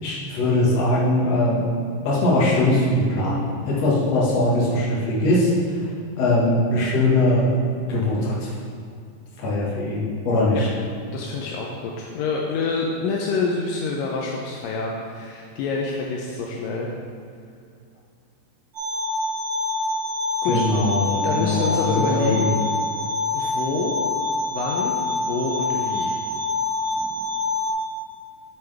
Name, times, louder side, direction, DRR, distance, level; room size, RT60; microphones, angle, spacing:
voice 1, 0.0-1.6 2.0-5.5 5.8-7.5 7.9-8.5 9.4-10.7 20.4-22.5 26.9-27.1, left 1 dB, 55° left, -6 dB, 2.4 m, -21 dB
voice 2, 11.1-16.9 20.4-20.6 21.2-22.6 23.3-24.0 24.5-26.2, left 4 dB, 80° left, -1 dB, 2.3 m, -27 dB
sound 1, 18.7-27.7, left 3 dB, 55° right, 3.4 m, -26 dB
8.2 x 7.9 x 3.4 m, 2.4 s
omnidirectional pair, 4.1 m